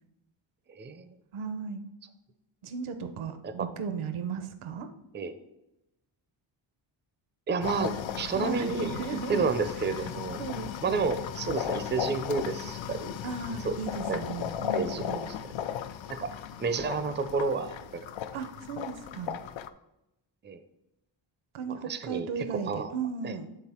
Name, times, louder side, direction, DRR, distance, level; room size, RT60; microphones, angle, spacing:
voice 1, 0.8-1.1 3.4-3.7 5.1-5.3 7.5-9.0 9.3-10.4 10.8-13.2 13.6-13.8 14.1-14.2 14.7-15.1 15.4-15.7 16.1-16.3 16.6-18.1 20.4-20.6 21.9-22.9 23.2-23.4, right 4 dB, 20° right, 11 dB, 0.5 m, -30 dB
voice 2, 1.3-1.8 2.6-4.9 8.3-10.0 10.4-11.0 13.2-15.3 18.3-19.4 21.5-23.5, right 5 dB, 75° right, 9 dB, 0.8 m, -36 dB
sound 1, 7.6-19.7, left 9 dB, 65° left, 0.6 m, -36 dB
9.2 x 3.8 x 4.3 m, 0.88 s
cardioid pair, 90°, 49 cm